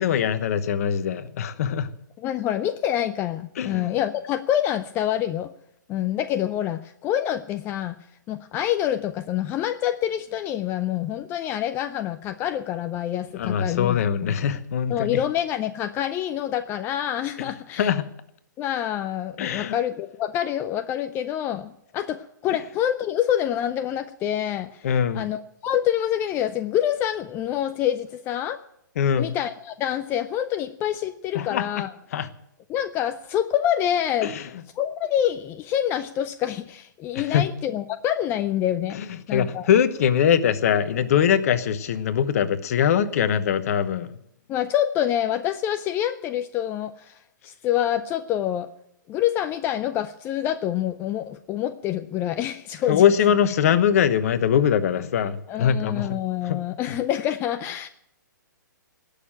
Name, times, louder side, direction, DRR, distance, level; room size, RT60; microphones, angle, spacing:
voice 1, 0.0-1.9 3.6-4.0 13.3-15.2 17.8-18.1 19.4-19.8 24.8-25.3 29.0-29.3 31.3-31.7 32.1-32.3 34.2-34.4 37.1-37.4 38.9-39.1 39.3-44.1 52.9-56.6 56.9-57.0, left 8 dB, 50° left, 13 dB, 1.0 m, -22 dB
voice 2, 2.2-5.5 5.9-8.0 8.3-14.3 14.9-17.9 18.6-24.9 25.1-28.6 29.2-31.9 32.7-34.3 34.8-39.0 39.3-39.7 44.5-48.7 49.1-53.0 55.5-57.9, left 11 dB, 20° left, 11 dB, 0.5 m, -26 dB
18.0 x 6.7 x 8.8 m, 0.77 s
figure-of-eight pair, 125°, 11 cm